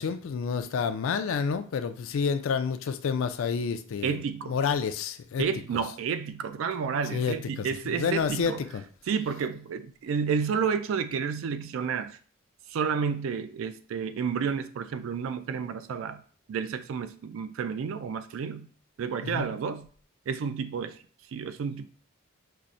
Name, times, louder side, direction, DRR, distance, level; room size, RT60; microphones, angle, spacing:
voice 1, 0.0-4.2 4.5-5.4 7.1-7.7 7.9-8.8 19.2-19.4, left 6 dB, 70° left, 0.3 m, -29 dB
voice 2, 4.0-4.6 5.4-8.7 9.1-12.1 12.7-16.2 16.5-18.7 19.0-19.9 20.3-20.9 21.3-21.9, right 6 dB, 70° right, 0.3 m, -30 dB
5.6 x 2.0 x 2.5 m
head